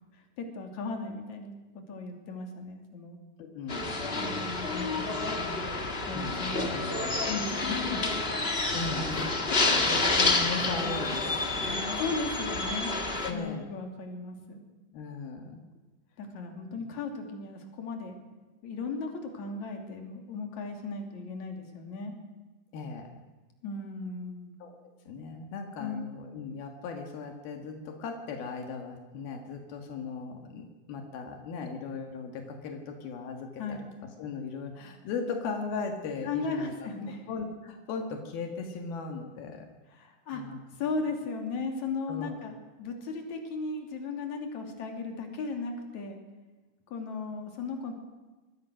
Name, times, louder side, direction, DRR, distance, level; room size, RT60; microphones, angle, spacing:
voice 1, 0.1-1.6 1.9-3.2 4.1-5.6 6.1-6.8 7.3-8.2 9.5-10.1 12.0-12.9 13.3-14.6 16.2-18.2 18.6-22.2 23.6-24.5 25.8-26.1 33.6-33.8 36.2-37.2 39.9-40.4 40.8-46.2 46.9-47.9, left 3 dB, 50° left, 3 dB, 4.1 m, -36 dB
voice 2, 3.4-4.0 6.1-7.2 8.7-12.0 13.2-13.7 14.9-15.6 22.7-23.2 24.6-24.7 25.1-36.7 37.3-40.1 40.3-40.6 42.1-42.4, left 4 dB, 80° left, 4 dB, 3.6 m, -38 dB
sound 1, 3.7-13.3, left 3 dB, 30° left, 1.0 m, -29 dB
25.5 x 20.5 x 6.4 m, 1.2 s
omnidirectional pair, 4.2 m